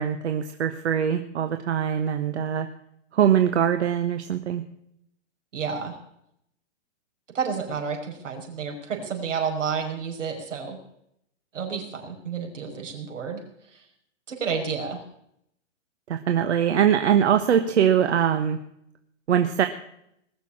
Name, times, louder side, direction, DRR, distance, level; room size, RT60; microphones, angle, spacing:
voice 1, 0.0-2.7 3.1-4.6 16.1-18.6 19.3-19.7, right 9 dB, 65° right, 8 dB, 1.3 m, -22 dB
voice 2, 5.5-6.0 7.3-10.8 11.5-13.4 13.7-13.8 14.3-15.0, right 6 dB, 85° right, 3 dB, 5.5 m, -30 dB
20.5 x 7.0 x 8.6 m, 0.75 s
hypercardioid pair, 155°, 36 cm